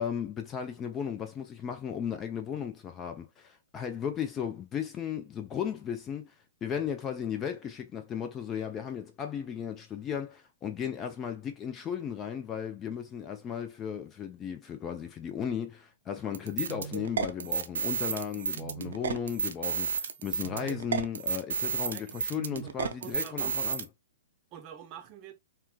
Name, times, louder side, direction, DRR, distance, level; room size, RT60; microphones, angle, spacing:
voice 1, 0.0-6.3 6.6-23.9, left 8 dB, 20° left, 0.4 m, -35 dB
sound 1, 16.3-23.8, right 6 dB, 60° right, 0.5 m, -32 dB
voice 2, 22.6-23.6 24.5-25.3, right 9 dB, 30° right, 0.7 m, -46 dB
4.4 x 2.1 x 2.3 m
figure-of-eight pair, 115°, 0 cm